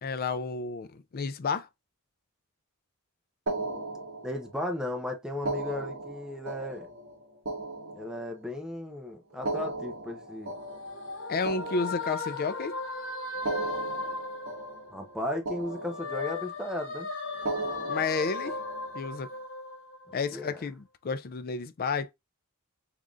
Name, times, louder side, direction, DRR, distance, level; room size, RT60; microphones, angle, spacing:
voice 1, 0.0-1.7 11.3-12.8 17.9-18.5 18.9-19.3 20.1-22.1, left 4 dB, 40° left, 0.4 m, -31 dB
sound 1, 3.5-4.7 5.3-8.6 9.3-12.6 13.3-15.2 15.4-16.5 17.3-19.1, right 2 dB, 60° right, 1.6 m, -37 dB
voice 2, 4.2-6.9 7.9-10.5 14.9-17.1 20.3-20.6, left 1 dB, 5° right, 0.7 m, -35 dB
sound 2, 10.3-15.3 15.6-20.4, left 3 dB, 60° left, 0.9 m, -37 dB
3.8 x 3.5 x 2.4 m
head